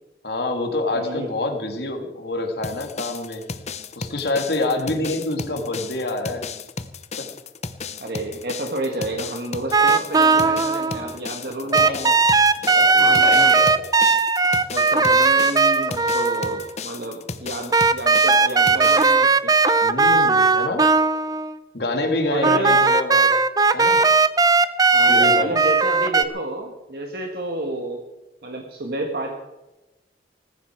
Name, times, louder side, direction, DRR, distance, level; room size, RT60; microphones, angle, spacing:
voice 1, 0.2-3.4 4.0-6.4 7.2-7.3 9.7-9.8 10.4-10.5 11.0-11.2 11.6-12.2 12.6-13.8 19.8-20.8 21.7-23.3 23.7-24.0 25.1-25.5, left 2 dB, 65° left, 4 dB, 2.6 m, -27 dB
voice 2, 0.9-1.3 8.0-12.1 13.0-13.5 14.7-19.5 22.3-22.8 24.9-28.0 28.4-29.3, right 1 dB, 60° right, 2 dB, 1.7 m, -30 dB
sound 1, 2.6-19.1, left 4 dB, 40° left, 0.9 m, -34 dB
sound 2, 9.7-11.2 11.7-16.7 17.7-21.6 22.4-26.2, right 4 dB, 20° right, 0.6 m, -17 dB
18.5 x 15.5 x 4.6 m, 1.0 s
head